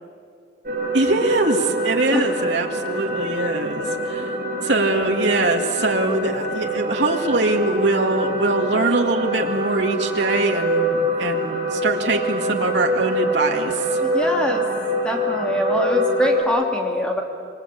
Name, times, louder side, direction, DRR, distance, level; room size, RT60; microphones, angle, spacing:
sound 1, 0.6-16.4, equal, 50° right, 7.2 m, -25 dB
voice 1, 0.9-4.3 4.6-14.0, right 2 dB, 80° right, 2 dB, 2.5 m, -22 dB
voice 2, 14.0-14.6 15.0-17.2, equal, 5° left, 1 dB, 2.9 m, -23 dB
27.0 x 24.5 x 8.7 m, 2.4 s
head